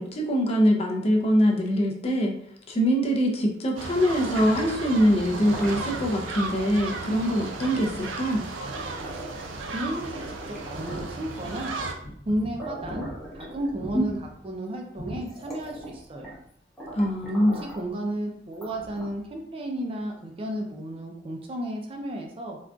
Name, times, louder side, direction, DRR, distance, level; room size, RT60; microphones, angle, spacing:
voice 1, 0.0-2.3 2.7-8.5 13.9-14.2 16.9-17.6, equal, 35° left, 0 dB, 0.5 m, -23 dB
sound 1, 3.8-11.9, right 3 dB, 85° right, 0.4 m, -35 dB
sound 2, 4.3-6.2 7.1-7.3 7.7-9.8 10.1-11.8 12.3-12.4 12.6-14.1 14.7-14.8 15.2-16.5 16.8-17.9 18.5-19.3, right 1 dB, ahead, 0.9 m, -42 dB
sound 3, 6.0-7.9 8.5-9.3 9.6-9.7 10.0-10.1 10.5-15.8 16.1-16.3 17.8-17.9, equal, 75° left, 0.8 m, -42 dB
voice 2, 8.9-9.3 9.7-11.8 12.3-13.1 13.3-14.1 14.4-16.4 17.2-22.6, right 1 dB, 30° right, 1 dB, 0.4 m, -33 dB
3.7 x 2.4 x 2.3 m, 0.68 s
head